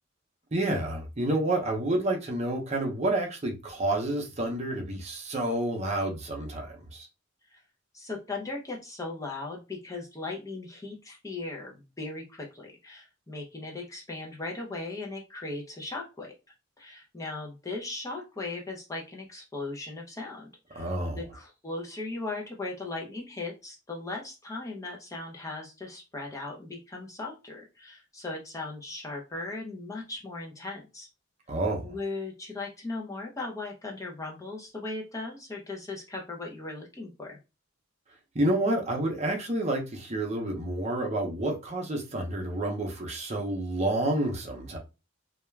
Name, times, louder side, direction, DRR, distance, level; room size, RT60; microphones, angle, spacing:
voice 1, 0.5-7.1 20.7-21.2 31.5-31.9 38.3-44.8, right 1 dB, 35° right, 0.6 m, -29 dB
voice 2, 7.9-16.3 16.8-31.1 31.8-37.4, left 3 dB, 15° left, 0.5 m, -38 dB
2.3 x 2.2 x 3.1 m
head